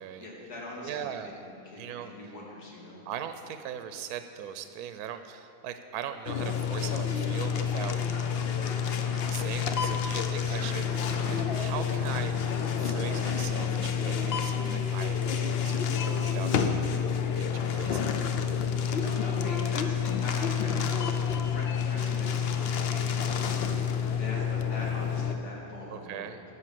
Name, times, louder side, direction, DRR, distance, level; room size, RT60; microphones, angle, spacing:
voice 1, 0.2-3.0 10.5-10.7 18.7-23.7 24.0-26.3, left 1 dB, 75° left, -4 dB, 2.7 m, -43 dB
voice 2, 0.8-1.4 1.8-2.1 3.1-8.0 9.3-10.9 11.1-16.9 17.3-18.1 25.9-26.4, right 9 dB, 75° right, 9 dB, 1.1 m, -40 dB
sound 1, 6.2-25.3, left 7 dB, 60° left, 0.6 m, -29 dB
sound 2, 7.4-13.4, left 3 dB, 45° left, 1.0 m, -43 dB
sound 3, 11.8-19.8, equal, 10° left, 1.0 m, -46 dB
11.0 x 6.7 x 7.5 m, 2.8 s
omnidirectional pair, 1.7 m